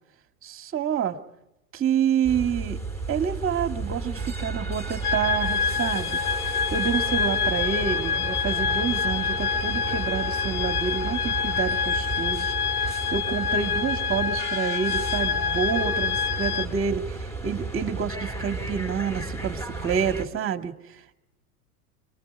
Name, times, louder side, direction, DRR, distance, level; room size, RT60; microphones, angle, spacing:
voice 1, 0.4-1.2 1.7-2.8 3.1-20.7, right 7 dB, 30° right, 7 dB, 2.1 m, -28 dB
sound 1, 2.2-20.3, right 3 dB, 5° left, 4.7 m, -33 dB
sound 2, 5.0-16.7, left 7 dB, 80° left, 1.3 m, -27 dB
26.0 x 24.5 x 5.0 m, 0.86 s
hypercardioid pair, 100°, 45 cm